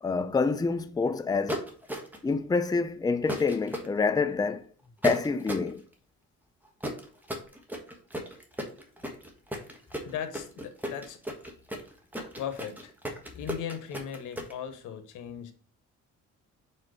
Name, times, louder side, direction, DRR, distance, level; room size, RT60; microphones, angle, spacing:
voice 1, 0.0-1.6 2.2-4.6 5.0-5.8, left 4 dB, 15° left, 0.5 m, -27 dB
sound 1, 1.5-2.3 3.3-3.9 5.0-5.7 6.8-14.5, equal, 5° right, 1.4 m, -34 dB
voice 2, 10.1-11.2 12.4-12.9 13.3-15.5, left 8 dB, 85° left, 1.0 m, -37 dB
4.4 x 4.4 x 4.9 m
cardioid pair, 90°, 30 cm